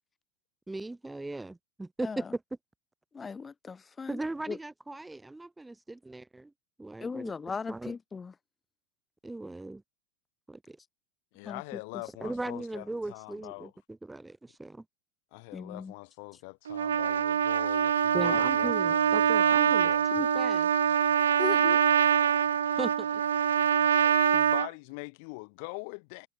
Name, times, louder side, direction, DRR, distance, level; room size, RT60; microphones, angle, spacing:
voice 1, 0.7-2.2 4.1-6.5 6.8-7.3 7.7-7.9 9.2-9.8 10.5-10.8 12.2-14.8 18.1-20.7 22.8-23.2, right 2 dB, 10° right, 0.5 m, -38 dB
voice 2, 2.0-2.3 3.1-4.2 4.5-4.6 7.0-8.3 11.4-11.8 12.2-12.4 15.5-15.9 21.4-21.8, left 5 dB, 20° left, 2.1 m, -38 dB
voice 3, 11.3-13.7 15.3-20.1 23.9-26.3, left 33 dB, 60° left, 2.2 m, -43 dB
Trumpet, 16.7-24.7, right 8 dB, 80° right, 0.3 m, -24 dB
hypercardioid pair, 90°, 0 cm